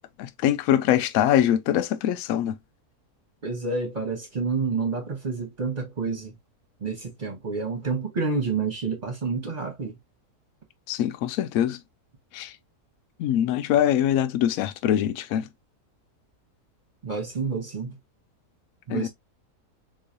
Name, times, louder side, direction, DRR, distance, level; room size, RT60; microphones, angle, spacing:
voice 1, 0.2-2.5 10.9-11.8 12.3-12.5 13.2-15.5 18.9-19.1, left 11 dB, 70° left, 0.9 m, -23 dB
voice 2, 3.4-6.3 6.8-10.0 17.0-18.0 18.9-19.1, right 4 dB, 35° right, 0.7 m, -29 dB
3.7 x 3.1 x 2.5 m
omnidirectional pair, 1.6 m